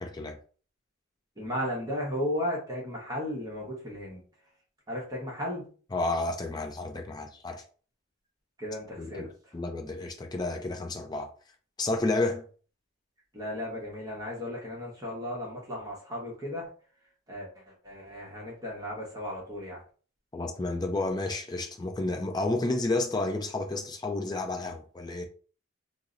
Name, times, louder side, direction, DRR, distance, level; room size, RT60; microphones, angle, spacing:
voice 1, 0.0-0.4 5.9-7.6 9.0-11.3 11.8-12.4 20.3-25.2, left 2 dB, 20° left, 0.4 m, -31 dB
voice 2, 1.4-4.2 4.9-5.7 8.6-9.3 13.3-16.7 17.3-19.8, left 1 dB, 20° right, 0.8 m, -35 dB
2.7 x 2.0 x 3.7 m
head